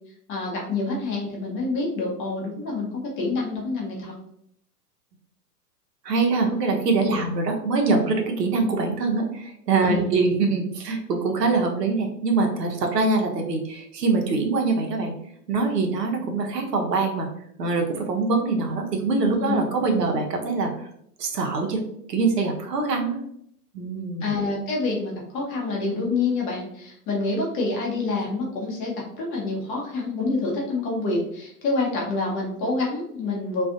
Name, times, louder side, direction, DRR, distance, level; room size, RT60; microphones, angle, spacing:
voice 1, 0.3-4.1 7.0-7.2 9.8-10.1 19.4-19.6 24.2-33.7, left 3 dB, 25° left, -2 dB, 0.7 m, -27 dB
voice 2, 6.0-15.1 15.5-17.3 17.6-20.7 21.2-21.8 22.1-23.2 23.7-24.3, right 3 dB, 80° right, 2 dB, 0.7 m, -24 dB
2.4 x 2.4 x 2.5 m, 0.70 s
figure-of-eight pair, 100°, 48 cm